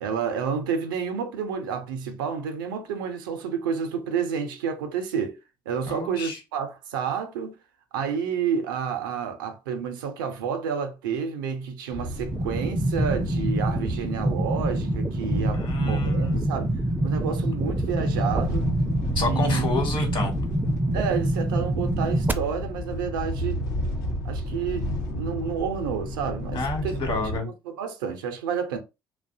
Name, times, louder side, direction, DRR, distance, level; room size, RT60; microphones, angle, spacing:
voice 1, 0.0-5.4 5.7-7.6 7.9-16.7 17.0-18.7 19.2-19.6 20.9-23.6 24.2-27.0 27.7-28.8, right 6 dB, 80° right, 0.5 m, -30 dB
voice 2, 5.9-6.4 15.5-16.6 19.1-20.3 26.5-27.5, left 1 dB, 45° left, 1.0 m, -28 dB
sound 1, 11.9-27.4, equal, 80° left, 0.6 m, -32 dB
sound 2, 12.3-22.3, right 1 dB, 15° right, 0.4 m, -26 dB
2.5 x 2.1 x 2.5 m
hypercardioid pair, 50°, 11 cm